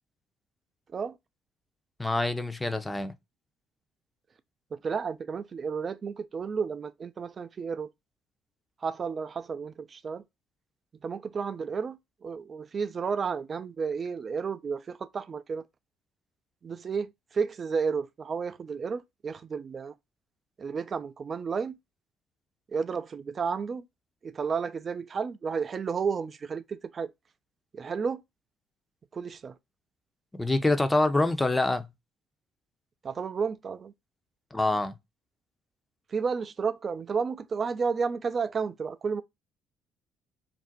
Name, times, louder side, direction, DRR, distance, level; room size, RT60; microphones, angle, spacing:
voice 1, 2.0-3.1 30.3-31.9 34.5-34.9, left 2 dB, 15° left, 0.6 m, -26 dB
voice 2, 4.7-7.9 8.8-10.2 11.0-15.6 16.6-19.9 20.6-21.8 22.7-23.9 24.2-27.1 27.7-28.2 29.1-29.6 33.0-33.9 36.1-39.2, right 5 dB, 45° right, 0.4 m, -32 dB
2.5 x 2.0 x 3.9 m
hypercardioid pair, 55°, 0 cm